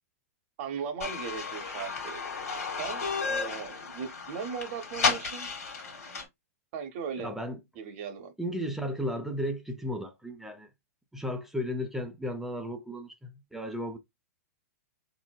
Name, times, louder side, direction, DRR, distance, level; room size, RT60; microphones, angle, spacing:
voice 1, 0.6-2.2 2.8-5.5 6.7-7.3 7.8-8.3, right 6 dB, 50° right, 0.7 m, -38 dB
sound 1, 1.0-6.2, left 5 dB, 75° left, 1.3 m, -33 dB
voice 2, 7.2-7.6 8.4-10.7 11.1-14.0, equal, 5° right, 0.4 m, -34 dB
3.9 x 2.0 x 2.2 m
hypercardioid pair, 115°, 8 cm